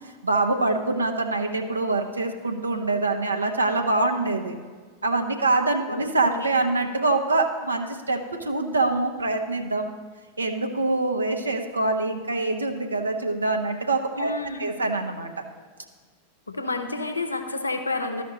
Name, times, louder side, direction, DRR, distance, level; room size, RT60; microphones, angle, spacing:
voice 1, 0.2-4.5 5.0-9.9 10.4-14.3 14.6-15.4, right 2 dB, 80° right, 4 dB, 0.7 m, -25 dB
voice 2, 5.9-6.4 14.2-14.7 16.5-18.2, left 3 dB, 80° left, 7 dB, 0.7 m, -30 dB
13.0 x 5.1 x 4.0 m, 1.5 s
figure-of-eight pair, 90°, 0 cm